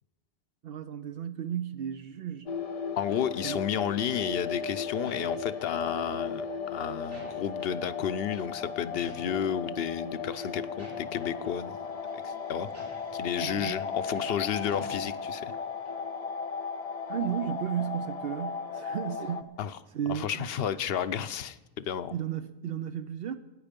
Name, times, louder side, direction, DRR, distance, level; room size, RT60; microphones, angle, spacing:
voice 1, 0.6-2.5 3.4-3.6 13.4-13.8 17.1-19.6 19.9-20.5 22.1-23.4, right 9 dB, 70° right, 0.8 m, -34 dB
sound 1, 2.5-19.4, left 5 dB, 40° left, 0.7 m, -36 dB
voice 2, 3.0-11.8 12.1-12.7 13.1-15.5 19.6-19.8 20.1-22.1, left 9 dB, 75° left, 0.9 m, -32 dB
sound 2, 3.1-4.2 4.6-8.0 8.2-8.4 8.8-9.5 9.8-11.5 12.0-12.1 12.6-15.6 15.8-15.9, left 1 dB, 90° right, 5.9 m, -51 dB
18.5 x 9.8 x 5.2 m
omnidirectional pair, 1.0 m